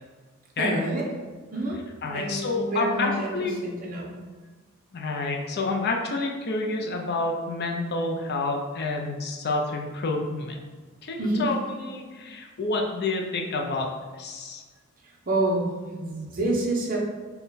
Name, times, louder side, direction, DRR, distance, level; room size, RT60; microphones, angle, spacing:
voice 1, 0.6-1.0 1.5-1.8 2.1-4.1 11.2-11.5 15.3-17.0, right 2 dB, 40° right, -2 dB, 0.7 m, -27 dB
voice 2, 2.0-3.5 4.9-10.6 11.0-13.9 14.1-14.6, left 3 dB, 50° left, 2 dB, 0.5 m, -28 dB
3.9 x 2.2 x 3.9 m, 1.4 s
head